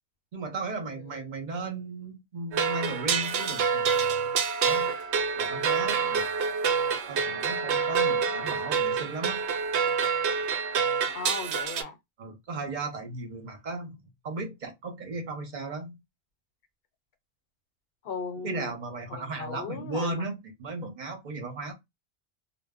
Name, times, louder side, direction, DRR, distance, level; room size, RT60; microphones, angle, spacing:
voice 1, 0.3-4.2 4.6-4.9 5.4-6.2 7.1-9.4 12.2-14.0 14.2-16.0 18.4-21.7, right 3 dB, 50° right, 0.8 m, -36 dB
sound 1, 2.5-11.8, right 6 dB, 85° right, 0.9 m, -27 dB
voice 2, 11.1-12.0 18.0-18.7 19.1-20.2, left 5 dB, 65° left, 0.8 m, -37 dB
2.0 x 2.0 x 3.5 m
omnidirectional pair, 1.1 m